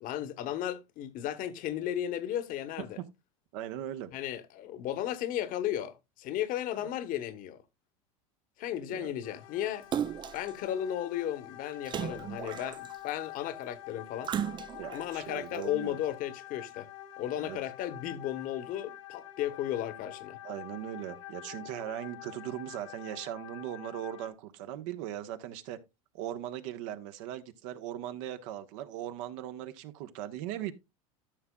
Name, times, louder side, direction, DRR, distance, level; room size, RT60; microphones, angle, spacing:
voice 1, 0.0-3.0 4.1-7.6 8.6-9.9 10.3-14.3 14.9-16.9 17.2-20.4, left 11 dB, 50° left, 1.1 m, -35 dB
voice 2, 3.5-4.1 8.9-9.1 14.8-16.0 17.3-17.6 20.4-25.8 26.1-30.7, right 12 dB, 65° right, 1.2 m, -39 dB
sound 1, 9.2-24.3, left 13 dB, 75° left, 1.7 m, -47 dB
Splash splatter, 9.9-10.5 11.9-13.1 14.2-15.0 15.6-15.7, right 9 dB, 25° right, 0.4 m, -35 dB
13.5 x 6.2 x 2.3 m
hypercardioid pair, 100°, 18 cm